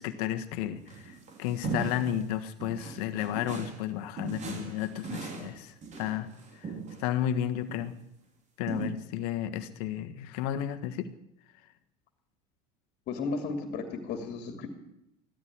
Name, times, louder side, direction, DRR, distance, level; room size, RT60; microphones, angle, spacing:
voice 1, 0.0-6.7 7.0-7.9 8.6-11.1, left 11 dB, 70° left, 9 dB, 1.5 m, -33 dB
sound 1, 0.8-2.2 2.6-3.9 4.2-7.1 7.7-7.9 8.7-8.9, right 4 dB, 35° right, 3.2 m, -38 dB
voice 2, 13.1-14.7, left 4 dB, 50° left, 6 dB, 2.5 m, -34 dB
15.5 x 12.5 x 6.1 m, 0.87 s
supercardioid pair, 100°, 20 cm